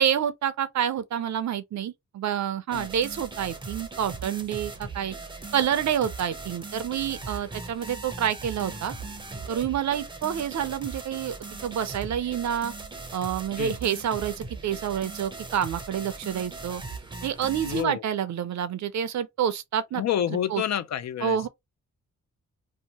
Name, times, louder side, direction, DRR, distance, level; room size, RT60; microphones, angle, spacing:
voice 1, 0.0-5.1 5.5-8.9 9.5-11.3 11.6-12.7 13.1-16.8 17.2-20.0 20.5-20.6 21.2-21.5, right 9 dB, 65° right, 0.5 m, -28 dB
sound 1, 2.7-17.8, right 3 dB, 15° right, 0.6 m, -39 dB
voice 2, 17.6-18.0 19.9-21.5, left 10 dB, 60° left, 0.4 m, -29 dB
2.8 x 2.1 x 2.8 m
wide cardioid pair, 110°, 31 cm